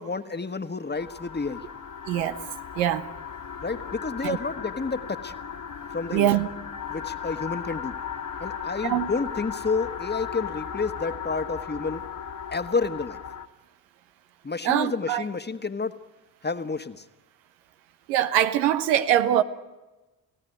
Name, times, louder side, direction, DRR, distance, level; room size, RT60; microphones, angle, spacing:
voice 1, 0.0-1.6 3.6-5.3 5.9-6.4 6.9-8.0 8.4-12.0 12.5-13.2 14.4-16.0 16.4-17.0, left 4 dB, 20° left, 1.6 m, -30 dB
sound 1, 0.9-13.5, left 8 dB, 40° left, 2.0 m, -36 dB
voice 2, 2.1-2.4 2.7-3.1 4.2-4.4 6.1-6.5 8.8-9.1 14.6-15.2 18.1-19.4, right 11 dB, 80° right, 1.2 m, -23 dB
29.5 x 16.5 x 9.3 m
hypercardioid pair, 45°, 50 cm